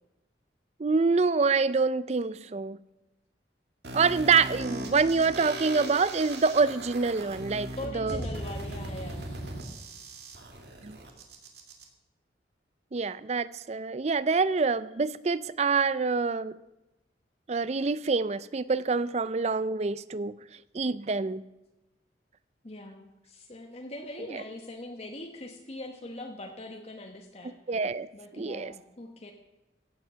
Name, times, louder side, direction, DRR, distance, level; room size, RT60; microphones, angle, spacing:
voice 1, 0.8-2.8 3.9-8.2 10.8-11.0 12.9-16.5 17.5-20.3 20.7-21.4 24.3-24.4 27.7-28.1 28.4-28.7, right 4 dB, 35° right, 17 dB, 0.5 m, -26 dB
sound 1, 3.8-11.8, right 1 dB, 60° right, 2.1 m, -38 dB
voice 2, 7.8-9.3 22.6-27.6 28.1-29.3, left 1 dB, 35° left, 3 dB, 1.1 m, -42 dB
16.0 x 8.0 x 6.8 m, 1.0 s
head